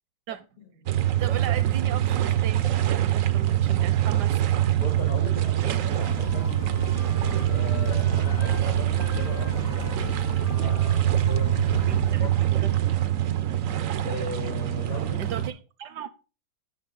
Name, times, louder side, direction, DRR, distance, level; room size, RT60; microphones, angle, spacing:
sound 1, 0.9-15.5, right 12 dB, 90° right, 0.7 m, -24 dB
voice 1, 1.2-4.4 5.6-5.8 6.5-6.7 11.9-13.0 15.2-16.1, right 9 dB, 75° right, 1.0 m, -37 dB
voice 2, 4.8-6.8 7.5-10.0 10.2-12.7 14.0-15.2, left 4 dB, 80° left, 3.1 m, -39 dB
Wind instrument woodwind instrument, 5.1-8.7 9.0-13.2, left 3 dB, 25° left, 0.3 m, -46 dB
sound 2, 6.0-12.2, left 6 dB, 60° left, 1.0 m, -37 dB
11.5 x 6.5 x 3.7 m
omnidirectional pair, 2.2 m